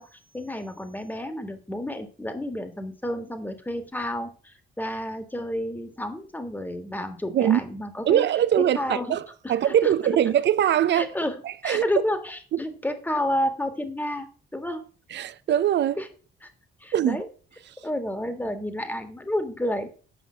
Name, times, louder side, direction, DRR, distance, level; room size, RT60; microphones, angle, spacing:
voice 1, 0.0-8.3 8.6-9.2 9.4-9.9 10.9-11.4 11.6-14.8 16.0-16.1 16.4-16.5 16.8-17.3 17.8-19.9, left 1 dB, 10° left, 1.6 m, -30 dB
voice 2, 8.1-11.1 11.4-11.8 12.5-12.6 15.1-16.0 16.9-17.2, right 10 dB, 60° right, 0.7 m, -22 dB
8.6 x 5.4 x 5.6 m
cardioid pair, 90°, 20 cm